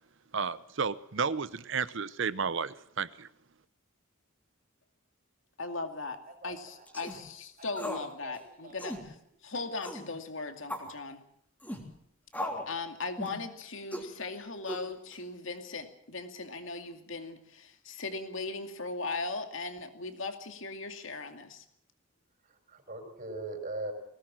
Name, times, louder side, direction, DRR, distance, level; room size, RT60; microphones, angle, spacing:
voice 1, 0.3-3.3, right 5 dB, 60° right, 16 dB, 0.7 m, -32 dB
voice 2, 5.6-6.2 6.4-9.1 9.4-11.2 12.4-21.6, left 3 dB, 65° left, 6 dB, 2.5 m, -38 dB
voice 3, 6.3-6.9 7.1-7.2 7.6-7.7 8.2-9.0 22.4-23.9, right 2 dB, 40° right, 4 dB, 6.0 m, -42 dB
sound 1, 6.9-7.2 7.8-8.1 8.3-8.4 8.8-9.0 9.8-10.1 10.7-10.9 11.6-11.8 12.3-12.7 13.2-13.4 13.9-14.1 14.7-15.1, left 1 dB, 10° left, 3.3 m, -37 dB
20.5 x 18.5 x 7.5 m, 0.72 s
head